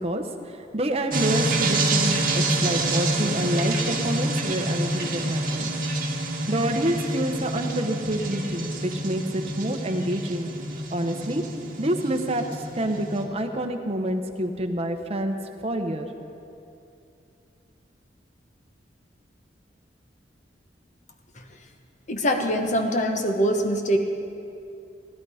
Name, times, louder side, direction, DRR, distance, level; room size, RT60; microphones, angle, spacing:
voice 1, 0.0-5.7 6.5-10.5 10.9-11.4 11.8-15.3 15.6-16.1, right 1 dB, 35° right, 5 dB, 0.9 m, -27 dB
sound 1, 1.1-13.2, right 2 dB, 50° right, 1.5 m, -27 dB
voice 2, 22.1-24.0, equal, 45° left, 5 dB, 1.1 m, -24 dB
16.5 x 11.5 x 5.0 m, 2.7 s
head